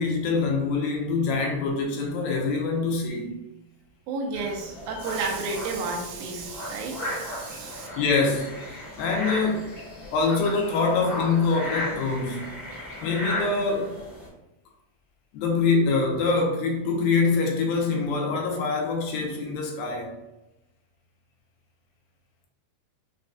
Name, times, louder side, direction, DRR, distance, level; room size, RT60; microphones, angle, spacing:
voice 1, 0.0-3.4 8.0-8.5 9.0-9.7 10.1-12.5 13.0-14.0 15.3-20.1, left 4 dB, 85° left, 0 dB, 2.5 m, -24 dB
voice 2, 4.1-7.9, right 3 dB, 90° right, 0 dB, 2.5 m, -32 dB
sound 1, 4.3-14.3, left 1 dB, 45° left, 1.6 m, -36 dB
6.2 x 2.6 x 2.2 m, 0.98 s
omnidirectional pair, 4.1 m